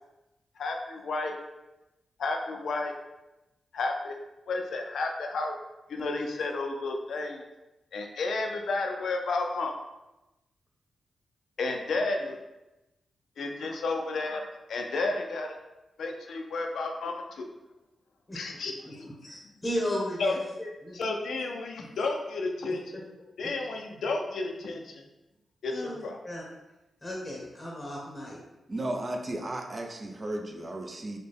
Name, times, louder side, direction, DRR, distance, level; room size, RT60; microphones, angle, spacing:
voice 1, 0.6-1.4 2.2-2.9 3.7-4.2 4.5-5.6 5.9-7.5 7.9-9.7 11.6-12.4 13.4-14.4 14.7-15.6 16.0-17.5 18.3-19.1 20.2-20.4 20.9-22.8 23.4-25.0 25.6-26.2, left 3 dB, 80° left, 3 dB, 0.5 m, -32 dB
voice 2, 19.2-21.0 23.4-23.5 25.7-26.5 27.0-28.4, equal, 20° left, -3 dB, 0.8 m, -35 dB
voice 3, 28.7-31.2, right 1 dB, 35° right, 3 dB, 0.5 m, -34 dB
4.0 x 2.2 x 3.4 m, 1.0 s
cardioid pair, 85°, 0 cm